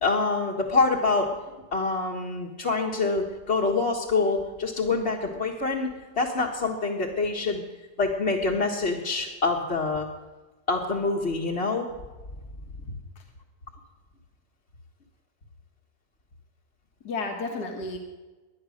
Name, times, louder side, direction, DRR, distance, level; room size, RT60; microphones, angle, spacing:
voice 1, 0.0-1.3 1.7-5.9 6.2-7.6 8.0-10.1 10.7-11.9, left 3 dB, 40° left, -3 dB, 1.8 m, -26 dB
voice 2, 12.9-13.2 17.0-18.0, left 3 dB, 70° left, 2 dB, 2.2 m, -33 dB
20.0 x 11.0 x 6.5 m, 1.2 s
omnidirectional pair, 1.8 m